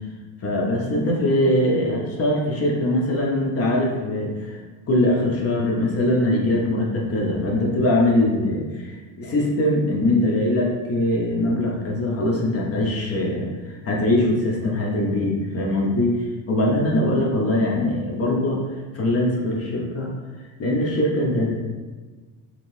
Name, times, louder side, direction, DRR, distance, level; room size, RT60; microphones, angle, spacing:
voice 1, 0.4-4.6 4.9-18.6 18.9-20.1 20.6-21.6, left 1 dB, 35° left, -1 dB, 0.5 m, -22 dB
2.8 x 2.7 x 3.0 m, 1.4 s
cardioid pair, 145°, 45 cm